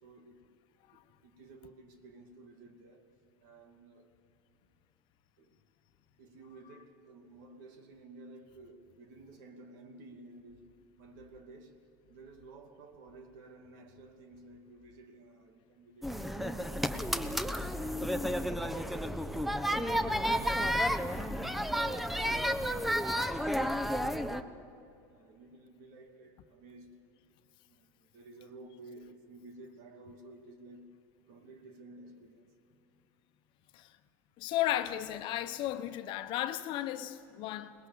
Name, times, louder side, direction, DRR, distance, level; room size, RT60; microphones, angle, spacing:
voice 1, 0.0-0.4 1.2-3.1 3.4-4.1 5.4-5.5 6.2-10.7 11.0-11.8 12.1-18.0 18.6-22.9 23.3-24.6 25.1-27.0 27.7-30.9 31.3-32.5, right 2 dB, 75° right, 2.5 m, -54 dB
sound 1, 16.0-24.4, equal, ahead, 0.9 m, -32 dB
voice 2, 34.4-37.7, left 13 dB, 60° left, 1.1 m, -34 dB
21.5 x 20.0 x 7.7 m
supercardioid pair, 100°, 10 cm